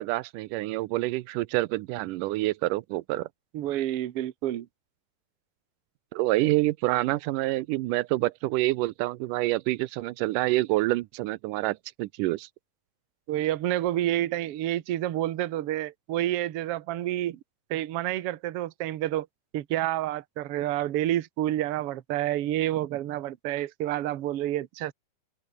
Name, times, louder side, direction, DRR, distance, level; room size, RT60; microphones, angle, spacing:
voice 1, 0.0-3.3 6.1-12.5, right 18 dB, 90° right, 2.2 m, -27 dB
voice 2, 3.5-4.7 13.3-17.4 17.7-19.3 19.5-24.9, right 13 dB, 60° right, 1.7 m, -29 dB
open air
omnidirectional pair, 3.8 m